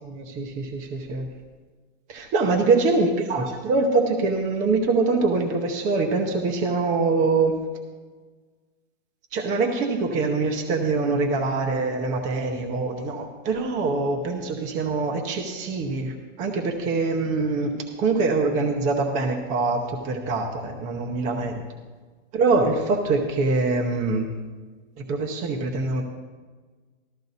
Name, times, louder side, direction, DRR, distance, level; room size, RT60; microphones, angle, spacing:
voice 1, 0.0-1.3 2.1-7.6 9.3-21.7 22.3-24.3 25.0-26.0, right 3 dB, 20° right, 3 dB, 0.8 m, -24 dB
13.5 x 13.5 x 4.0 m, 1.4 s
supercardioid pair, 165°, 37 cm